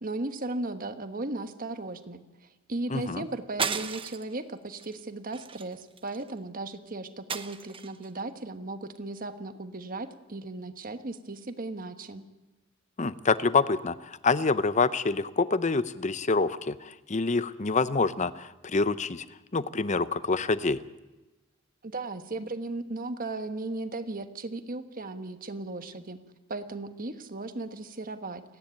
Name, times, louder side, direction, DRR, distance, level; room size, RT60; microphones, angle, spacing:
voice 1, 0.0-2.2 2.7-12.2 21.8-26.2 26.5-28.4, right 2 dB, 45° right, 8 dB, 1.3 m, -36 dB
voice 2, 2.9-3.2 13.0-19.2 19.5-20.8, left 4 dB, 35° left, 15 dB, 0.7 m, -26 dB
sound 1, 3.6-4.3 4.8-5.0 5.3-6.3 7.3-8.1, right 6 dB, 25° right, 1.0 m, -34 dB
29.0 x 10.5 x 9.1 m, 1.1 s
head